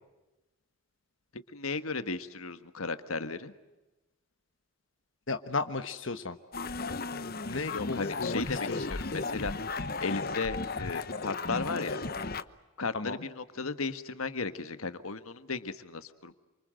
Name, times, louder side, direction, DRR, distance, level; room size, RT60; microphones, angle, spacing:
voice 1, 1.3-3.5 7.7-9.5 10.0-12.0 12.8-16.3, left 4 dB, 90° left, 10 dB, 1.6 m, -35 dB
voice 2, 5.3-6.4 7.5-9.0 12.9-13.2, left 3 dB, 65° left, 8 dB, 1.3 m, -34 dB
sound 1, 6.5-12.4, left 3 dB, 45° left, 1.0 m, -35 dB
28.5 x 25.5 x 7.7 m, 1.0 s
head